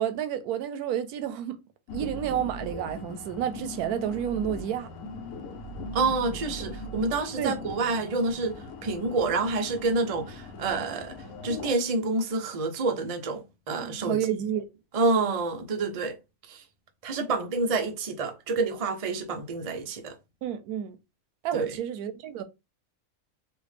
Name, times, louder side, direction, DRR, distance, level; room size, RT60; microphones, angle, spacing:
voice 1, 0.0-1.6 1.9-4.9 7.4-7.6 13.8-14.7 20.4-21.0 21.4-22.4, right 10 dB, 90° right, 1.1 m, -30 dB
sound 1, 1.9-11.7, left 1 dB, 85° left, 1.1 m, -40 dB
voice 2, 5.9-11.2 11.4-14.2 14.9-16.2 16.5-16.6 17.0-20.2 21.5-21.8, right 3 dB, 65° right, 0.3 m, -28 dB
3.3 x 2.5 x 3.2 m
omnidirectional pair, 1.5 m